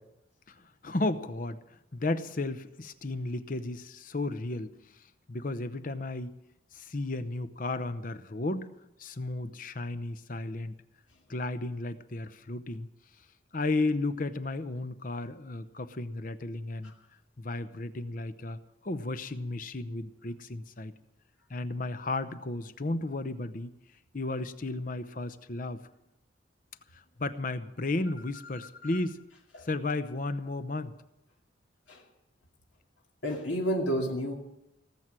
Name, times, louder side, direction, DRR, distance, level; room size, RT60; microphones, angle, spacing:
voice 1, 0.5-6.4 6.7-10.7 11.3-12.9 13.5-16.9 17.4-18.6 18.8-20.9 21.5-23.7 24.1-25.9 26.9-29.2 29.6-30.9, left 2 dB, 45° left, 12 dB, 0.8 m, -34 dB
voice 2, 33.2-34.3, equal, 80° left, -1 dB, 2.5 m, -30 dB
18.5 x 7.6 x 9.7 m, 0.89 s
head